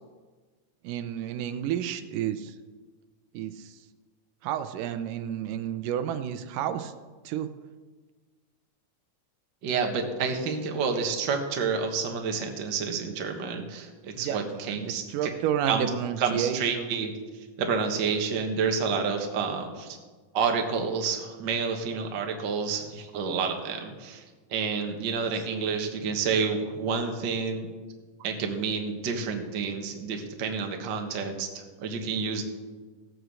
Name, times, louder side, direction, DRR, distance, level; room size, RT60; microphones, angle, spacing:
voice 1, 0.8-2.5 3.3-3.8 4.4-6.9 7.2-7.5 14.1-17.0 25.5-25.7 26.4-26.5, right 9 dB, 85° right, 10 dB, 2.3 m, -31 dB
voice 2, 9.6-15.0 15.7-15.9 16.2-17.1 17.6-20.0 20.3-24.2 24.5-27.7 28.2-32.4, right 5 dB, 50° right, 4 dB, 1.5 m, -29 dB
16.0 x 8.0 x 6.3 m, 1.4 s
omnidirectional pair, 3.8 m